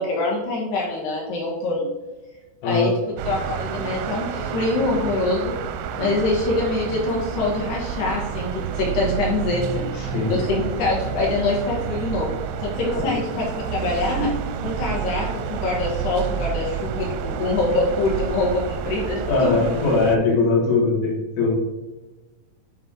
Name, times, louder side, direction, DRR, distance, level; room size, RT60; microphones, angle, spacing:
voice 1, 0.0-1.9 2.6-2.9 3.2-5.6 6.0-9.9 10.3-12.3 12.6-14.3 14.6-19.7, left 2 dB, 65° left, -3 dB, 3.1 m, -24 dB
sound 1, 3.2-20.2, right 8 dB, 85° right, 2.5 m, -29 dB
voice 2, 9.9-10.3 12.8-13.1 19.3-21.5, left 3 dB, 85° left, -8 dB, 4.8 m, -21 dB
10.0 x 4.4 x 3.8 m, 1.1 s
omnidirectional pair, 5.7 m